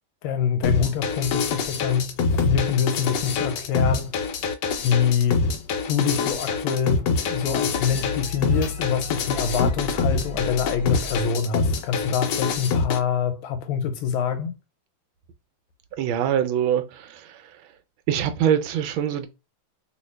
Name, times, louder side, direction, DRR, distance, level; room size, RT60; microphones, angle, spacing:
voice 1, 0.2-2.1 2.4-4.1 4.8-5.4 5.9-14.5, left 7 dB, 85° left, 1.4 m, -25 dB
sound 1, 0.6-13.0, left 4 dB, 70° left, 1.1 m, -25 dB
sound 2, 6.0-6.4 6.7-11.6, left 2 dB, 50° left, 1.1 m, -37 dB
voice 2, 16.0-17.6 18.1-19.3, right 9 dB, 80° right, 1.4 m, -24 dB
2.8 x 2.7 x 3.2 m
omnidirectional pair, 2.2 m